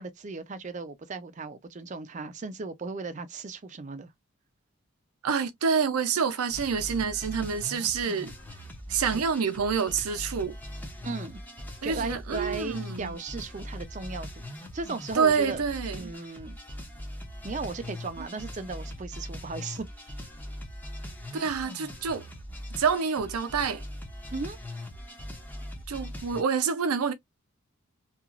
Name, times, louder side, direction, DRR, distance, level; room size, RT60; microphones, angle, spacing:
voice 1, 0.0-4.1 9.1-9.2 11.0-11.4 11.8-14.5 14.7-16.6 17.4-20.1 24.3-24.6, right 3 dB, 35° right, 0.4 m, -36 dB
voice 2, 5.2-8.3 8.9-10.6 11.8-13.2 15.1-16.1 21.3-22.3 22.8-23.8 25.9-27.1, right 6 dB, 85° right, 0.5 m, -27 dB
sound 1, 6.5-26.4, left 1 dB, 10° left, 0.6 m, -41 dB
2.8 x 2.4 x 2.4 m
head